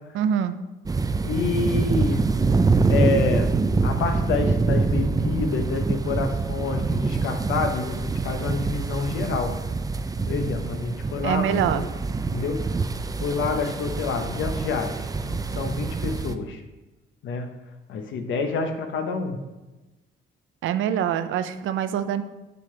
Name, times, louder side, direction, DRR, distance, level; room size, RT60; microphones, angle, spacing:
voice 1, 0.1-0.6 11.2-11.9 20.6-22.2, right 9 dB, 80° right, 10 dB, 0.5 m, -24 dB
sound 1, 0.9-16.3, right 4 dB, 20° right, 0.4 m, -25 dB
voice 2, 1.2-2.3 2.9-3.5 3.8-9.6 10.3-11.9 12.3-12.6 13.2-16.6 17.2-17.5 17.9-19.4, left 4 dB, 75° left, 6 dB, 0.9 m, -28 dB
6.8 x 6.7 x 3.3 m, 1.1 s
cardioid pair, 90°, 20 cm